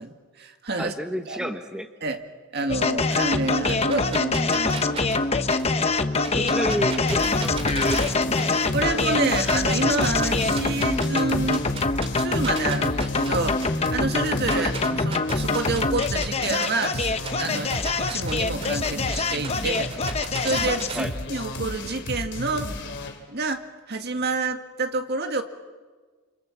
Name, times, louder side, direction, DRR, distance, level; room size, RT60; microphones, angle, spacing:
voice 1, 0.0-0.9 1.3-1.5 2.0-2.2 2.5-5.1 8.7-11.7 12.1-19.9 20.4-22.8 23.3-25.4, right 3 dB, 50° right, 6 dB, 1.9 m, -28 dB
voice 2, 0.8-1.9 6.0-8.5 14.5-14.7 19.6-19.7 20.9-21.1, equal, 5° right, 6 dB, 1.1 m, -31 dB
sound 1, 2.7-21.0, left 3 dB, 30° left, 1.0 m, -25 dB
sound 2, 3.7-8.8 9.1-11.2 11.5-16.9 17.2-21.0, right 3 dB, 25° right, 2.7 m, -36 dB
sound 3, 6.7-23.2, left 1 dB, 55° left, 3.2 m, -33 dB
28.0 x 28.0 x 7.3 m, 1.4 s
head